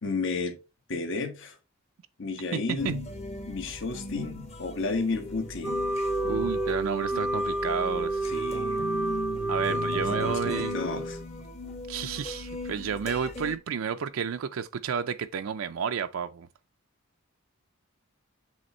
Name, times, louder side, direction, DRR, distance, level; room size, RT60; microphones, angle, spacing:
voice 1, 0.0-0.6 0.9-1.6 2.2-3.0 3.5-5.8 8.2-8.8 9.7-11.2, left 3 dB, 65° left, 1.3 m, -32 dB
voice 2, 2.5-2.9 6.3-8.2 9.5-10.8 11.9-16.5, right 7 dB, 75° right, 0.4 m, -31 dB
sound 1, 2.8-13.6, left 1 dB, 35° left, 1.0 m, -38 dB
Wind instrument woodwind instrument, 5.6-11.3, right 1 dB, 5° right, 0.3 m, -30 dB
7.7 x 3.6 x 4.2 m
head